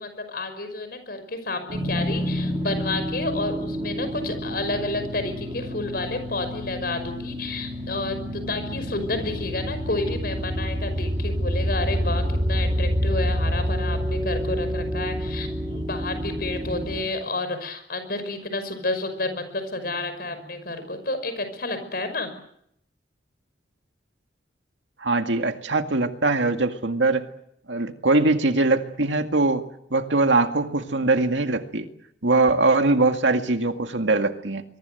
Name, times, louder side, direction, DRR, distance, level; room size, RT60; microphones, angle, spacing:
voice 1, 0.0-22.3, left 2 dB, 55° left, 10 dB, 5.8 m, -30 dB
sound 1, 1.7-17.0, equal, 25° right, 4.2 m, -28 dB
voice 2, 25.0-27.3 27.7-31.9 32.2-34.6, right 3 dB, 90° right, 6 dB, 2.1 m, -22 dB
24.5 x 23.0 x 7.9 m, 0.73 s
head